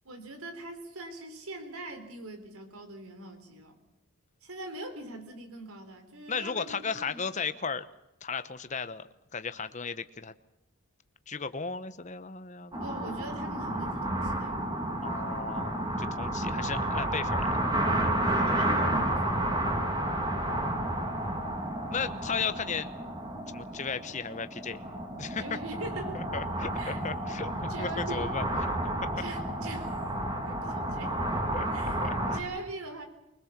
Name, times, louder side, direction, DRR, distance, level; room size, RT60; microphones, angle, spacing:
voice 1, 0.0-3.8 4.4-7.3 12.7-14.7 18.1-19.4 25.4-26.2 26.7-27.0 27.3-27.4 27.7-28.3 29.2-29.9 30.5-31.2 31.7-32.0 32.3-33.1, right 2 dB, 80° right, 7 dB, 4.1 m, -42 dB
voice 2, 6.3-7.8 8.2-10.3 11.3-12.8 15.0-17.5 20.1-20.9 21.9-22.9 23.5-24.8 25.2-25.4 26.1-28.4 31.5-31.7 32.0-32.4, left 5 dB, 35° left, 12 dB, 0.9 m, -35 dB
sound 1, 12.7-32.4, right 1 dB, 20° right, 2.8 m, -31 dB
24.0 x 20.5 x 7.4 m, 0.87 s
head